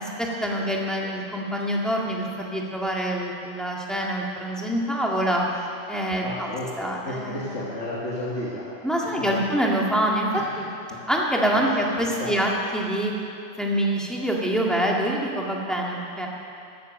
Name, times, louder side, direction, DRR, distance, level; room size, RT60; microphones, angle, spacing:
voice 1, 0.0-5.4 5.9-6.5 6.8-7.6 8.8-10.3 10.6-10.7 11.1-13.1 13.6-16.3, right 1 dB, ahead, -3 dB, 1.8 m, -25 dB
voice 2, 6.0-8.7 9.0-9.5 10.3-10.6 10.9-11.0 11.5-11.7 12.2-12.4, left 1 dB, 90° left, -6 dB, 2.1 m, -33 dB
15.0 x 9.8 x 6.5 m, 2.6 s
omnidirectional pair, 1.2 m